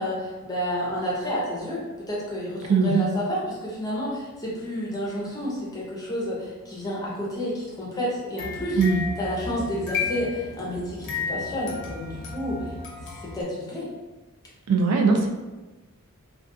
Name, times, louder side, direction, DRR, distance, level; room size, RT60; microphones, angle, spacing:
voice 1, 0.0-1.8 2.1-8.8 9.2-12.7 13.2-13.9, equal, 15° left, -6 dB, 0.6 m, -30 dB
voice 2, 2.7-3.0 8.8-9.0 14.7-15.3, right 4 dB, 75° right, 3 dB, 0.4 m, -20 dB
sound 1, 8.4-13.4, left 5 dB, 55° left, 0.6 m, -33 dB
2.4 x 2.3 x 2.6 m, 1.2 s
head